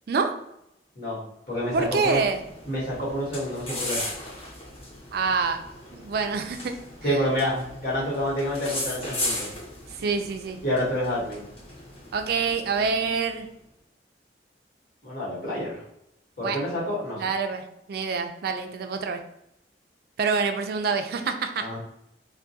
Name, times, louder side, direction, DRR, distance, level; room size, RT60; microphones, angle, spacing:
voice 1, 0.9-2.2 2.7-4.0 7.0-9.5 10.6-11.4 15.0-15.8 16.4-17.3 21.6-21.8, equal, 50° left, -6 dB, 1.1 m, -28 dB
sound 1, 1.6-13.4, left 1 dB, 35° left, 0.8 m, -37 dB
voice 2, 1.7-2.4 5.1-5.6 5.9-6.7 7.1-7.2 10.0-10.6 12.1-13.5 16.4-16.6 17.2-17.6 17.9-19.2 20.2-21.7, right 5 dB, 60° right, 7 dB, 0.3 m, -26 dB
2.3 x 2.2 x 2.7 m, 0.81 s
head